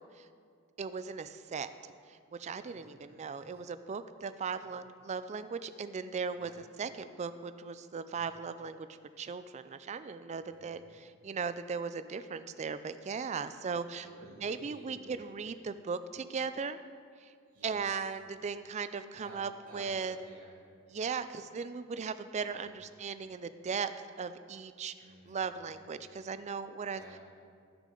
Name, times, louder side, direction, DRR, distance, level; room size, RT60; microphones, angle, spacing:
voice 1, 0.8-1.7 2.1-6.5 6.8-8.9 9.2-14.1 14.4-16.8 17.2-17.3 17.6-20.2 20.9-23.9 24.2-24.9 25.3-27.0, right 5 dB, 30° right, 12 dB, 0.4 m, -38 dB
voice 2, 2.6-3.6 4.5-4.7 6.3-6.5 8.1-8.3 10.3-10.9 14.0-15.3 17.5-18.0 19.2-20.6 22.5-22.8 25.0-25.7 26.8-27.2, right 1 dB, 75° right, -8 dB, 2.3 m, -55 dB
16.0 x 6.6 x 3.8 m, 2.2 s
head